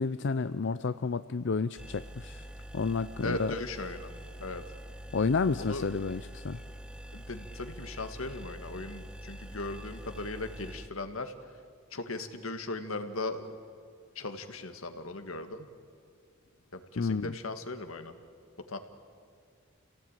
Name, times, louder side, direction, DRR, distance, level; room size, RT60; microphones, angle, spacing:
voice 1, 0.0-2.5 2.7-3.5 5.1-6.6 17.0-17.3, left 4 dB, 60° left, 12 dB, 0.5 m, -30 dB
sound 1, 1.8-10.9, equal, 5° right, 0.6 m, -45 dB
voice 2, 3.2-4.1 4.4-4.6 5.6-5.9 7.1-11.3 11.9-13.5 14.2-15.7 16.7-18.2 18.7-18.8, left 2 dB, 80° left, 8 dB, 1.9 m, -38 dB
28.0 x 17.5 x 9.1 m, 2.2 s
head